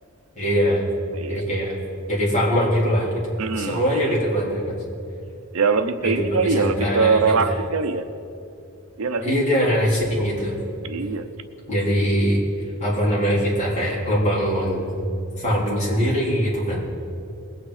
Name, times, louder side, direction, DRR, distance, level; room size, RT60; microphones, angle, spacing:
voice 1, 0.4-0.8 1.3-1.7 2.1-4.7 6.0-7.2 9.2-10.6 11.7-12.4 12.8-14.8 15.4-16.8, equal, 30° left, -6 dB, 3.6 m, -22 dB
voice 2, 1.1-1.4 3.4-4.1 5.5-8.0 9.0-9.3 10.8-11.3, right 4 dB, 75° right, 9 dB, 0.7 m, -22 dB
20.5 x 8.9 x 4.9 m, 2.7 s
head